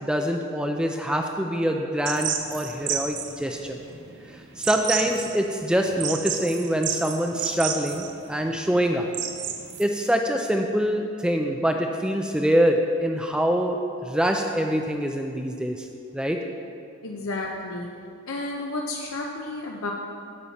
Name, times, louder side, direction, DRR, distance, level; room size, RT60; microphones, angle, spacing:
voice 1, 0.0-3.8 4.3-9.1 9.8-15.9 16.1-16.4, equal, 5° right, 3 dB, 0.3 m, -25 dB
sound 1, 2.0-9.8, right 8 dB, 55° right, 0.7 m, -31 dB
voice 2, 17.0-17.9 18.3-19.9, left 2 dB, 75° left, 0 dB, 0.7 m, -31 dB
10.5 x 7.2 x 4.1 m, 2.4 s
head